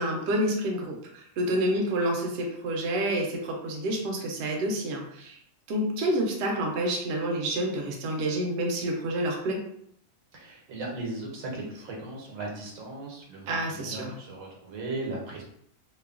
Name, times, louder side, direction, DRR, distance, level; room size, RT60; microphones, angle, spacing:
voice 1, 0.0-5.4 5.7-9.6 13.5-14.1, right 1 dB, 65° right, 0 dB, 0.8 m, -28 dB
voice 2, 10.3-15.4, right 2 dB, 80° right, -2 dB, 1.2 m, -37 dB
3.0 x 2.1 x 2.3 m, 0.69 s
omnidirectional pair, 1.4 m